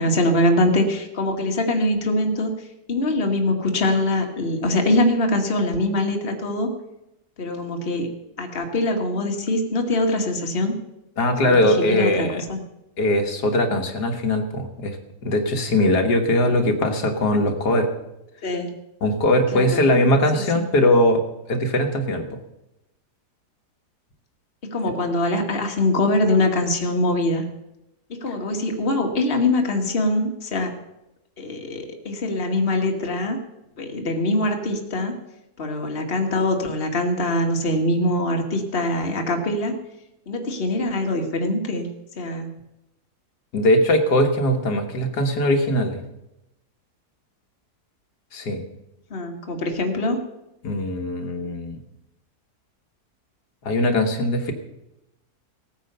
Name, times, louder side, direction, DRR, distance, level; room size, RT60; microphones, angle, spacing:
voice 1, 0.0-6.7 7.4-10.8 11.4-12.6 18.4-18.7 19.5-19.8 20.3-20.4 24.7-27.5 28.1-30.7 31.4-33.4 33.8-35.1 35.6-39.8 40.3-41.9 42.2-42.5 49.1-50.2, left 1 dB, 35° left, 3 dB, 1.8 m, -23 dB
voice 2, 11.2-12.4 13.0-15.0 15.2-17.9 19.0-21.2 21.5-22.4 43.5-46.0 48.3-48.6 50.6-51.8 53.6-54.5, left 1 dB, 75° left, 4 dB, 2.0 m, -20 dB
17.5 x 9.3 x 6.7 m, 0.93 s
omnidirectional pair, 1.8 m